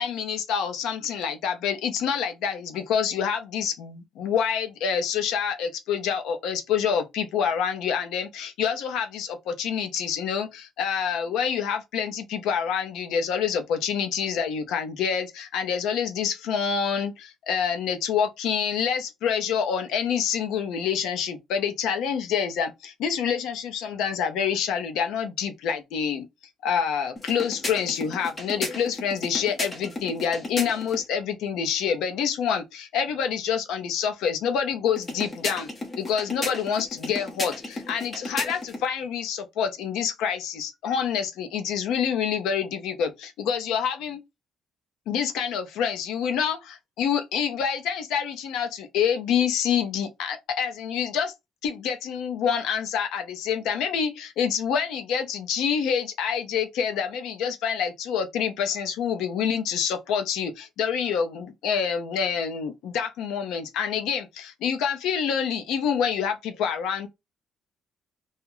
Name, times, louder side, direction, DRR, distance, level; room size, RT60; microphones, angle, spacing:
voice 1, 0.0-26.3 26.6-35.7 36.0-44.2 45.1-51.3 51.6-67.1, left 7 dB, 85° left, 0.6 m, -27 dB
sound 1, 27.2-31.0 35.0-38.9, left 2 dB, 20° left, 0.7 m, -34 dB
2.3 x 2.1 x 3.0 m
cardioid pair, 180°, 0 cm